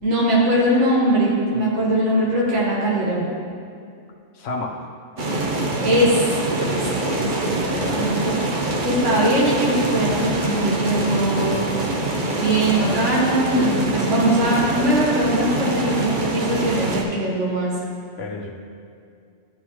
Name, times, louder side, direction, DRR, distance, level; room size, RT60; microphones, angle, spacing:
voice 1, 0.0-3.3 5.8-7.6 7.9-8.3 8.8-11.6 12.3-17.7, right 1 dB, 75° right, -6 dB, 1.8 m, -21 dB
voice 2, 4.3-4.8 7.6-8.0 12.4-12.5 18.2-18.5, left 3 dB, 80° left, 1 dB, 1.2 m, -31 dB
sound 1, 5.2-17.0, right 2 dB, 45° right, 0.9 m, -24 dB
13.0 x 5.2 x 3.1 m, 2.3 s
omnidirectional pair, 1.2 m